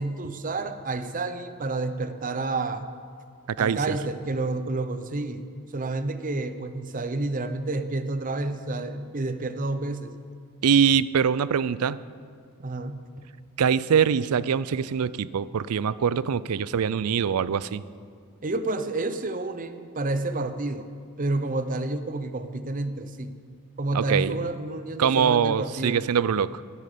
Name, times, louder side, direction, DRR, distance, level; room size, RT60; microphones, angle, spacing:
voice 1, 0.0-2.9 3.6-5.4 5.7-10.1 12.6-13.2 18.4-20.9 21.2-23.4 23.8-26.0, right 2 dB, 40° right, 10 dB, 0.7 m, -29 dB
voice 2, 3.6-4.0 10.6-12.0 13.6-17.8 23.9-24.4 25.0-26.6, right 7 dB, 85° right, 18 dB, 0.4 m, -23 dB
13.5 x 10.5 x 6.8 m, 2.2 s
head